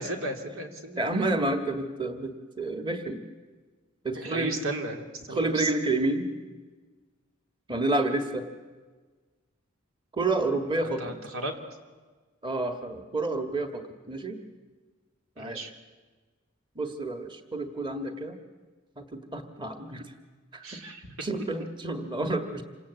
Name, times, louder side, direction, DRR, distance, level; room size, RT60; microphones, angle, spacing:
voice 1, 0.0-1.0 4.1-5.7 10.8-11.5 15.4-15.7 20.6-21.1, right 1 dB, 85° right, 4 dB, 3.2 m, -35 dB
voice 2, 1.0-3.2 4.0-4.5 5.3-6.3 7.7-8.5 10.1-11.1 12.4-14.4 15.4-15.6 16.7-18.4 19.0-20.0 20.5-20.8 21.2-22.6, right 2 dB, 25° right, 6 dB, 1.7 m, -29 dB
27.5 x 26.0 x 8.4 m, 1.4 s
head